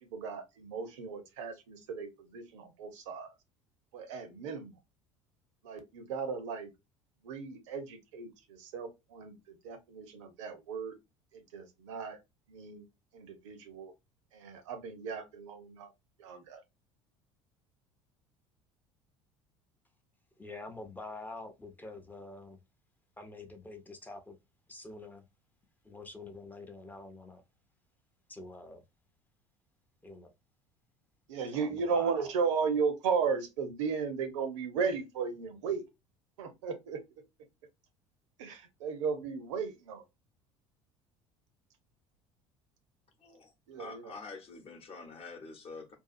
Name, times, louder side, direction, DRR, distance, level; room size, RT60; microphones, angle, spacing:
voice 1, 0.0-3.3 3.9-4.7 5.6-6.7 7.2-11.0 11.3-12.2 12.5-12.8 13.1-13.9 14.3-15.9 16.2-16.6 31.3-35.8 36.4-37.0 38.4-40.0 43.7-44.1, right 5 dB, 70° right, 0.7 m, -35 dB
voice 2, 20.4-22.6 23.2-24.4 24.7-25.3 25.8-27.4 28.3-28.8 30.0-30.3 31.5-32.3, left 2 dB, 10° left, 0.6 m, -46 dB
voice 3, 43.2-45.9, left 4 dB, 35° left, 0.9 m, -47 dB
2.7 x 2.3 x 2.4 m
figure-of-eight pair, 65°, 16 cm